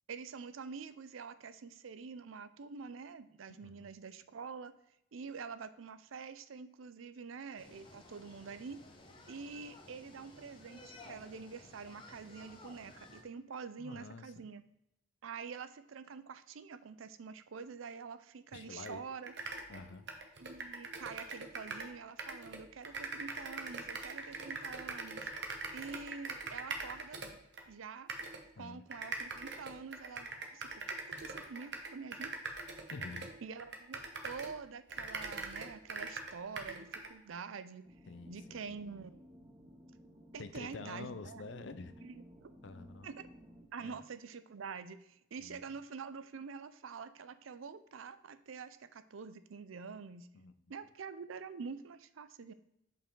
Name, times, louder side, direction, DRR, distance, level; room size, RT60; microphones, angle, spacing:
voice 1, 0.1-4.7 5.1-8.8 9.3-14.6 15.2-19.3 20.4-25.3 25.7-27.2 27.7-28.1 28.6-32.3 33.4-37.9 38.3-39.2 40.3-41.4 42.0-42.5 43.0-43.3 43.7-50.3 50.7-52.5, right 5 dB, 80° right, 13 dB, 0.5 m, -46 dB
voice 2, 3.5-3.9 13.8-14.5 18.5-19.0 19.7-20.1 28.6-28.8 32.9-33.3 38.1-38.7 40.4-42.1 42.6-43.1 43.8-44.0 45.4-45.6 50.3-50.5, left 3 dB, 65° left, 12 dB, 0.5 m, -48 dB
sound 1, 7.6-13.2, left 2 dB, 25° left, 0.9 m, -56 dB
sound 2, 18.9-19.0 19.2-21.9 22.2-27.6 28.1-28.4 28.9-34.6 34.9-37.1, right 3 dB, 55° right, 1.0 m, -42 dB
sound 3, 37.8-43.6, equal, 30° right, 1.6 m, -56 dB
6.7 x 5.4 x 3.8 m, 0.79 s
head